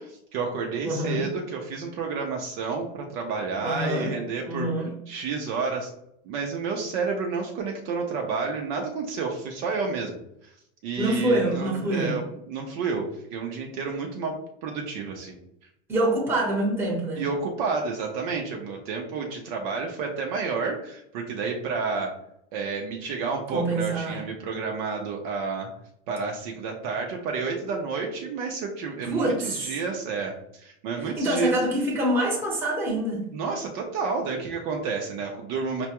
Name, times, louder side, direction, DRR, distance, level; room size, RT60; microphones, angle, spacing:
voice 1, 0.0-4.7 5.1-5.9 6.2-10.5 10.8-15.4 17.2-22.1 22.5-25.7 26.1-31.5 33.3-35.9, right 5 dB, 45° right, 1 dB, 0.6 m, -30 dB
voice 2, 0.8-1.3 3.6-4.1 4.4-4.9 11.0-12.1 15.9-17.2 23.5-24.2 29.0-29.8 31.0-33.2, right 1 dB, 5° right, -3 dB, 1.0 m, -26 dB
5.8 x 2.3 x 2.9 m, 0.76 s
supercardioid pair, 160°, 34 cm